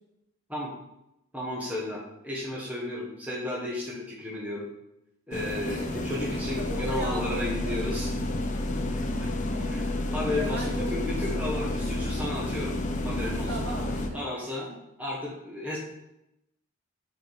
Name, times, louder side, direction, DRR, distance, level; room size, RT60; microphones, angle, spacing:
voice 1, 1.3-4.7 5.3-8.1 9.2-9.3 9.7-9.8 10.1-12.7 13.0-13.6 14.1-14.7 15.0-15.8, left 1 dB, 5° right, -5 dB, 1.1 m, -33 dB
sound 1, 5.3-14.1, left 1 dB, 35° left, 0.6 m, -30 dB
voice 2, 5.6-7.8 8.8-11.5 13.5-14.2 14.7-14.8, right 1 dB, 75° right, -4 dB, 2.2 m, -38 dB
4.7 x 4.7 x 5.3 m, 0.86 s
head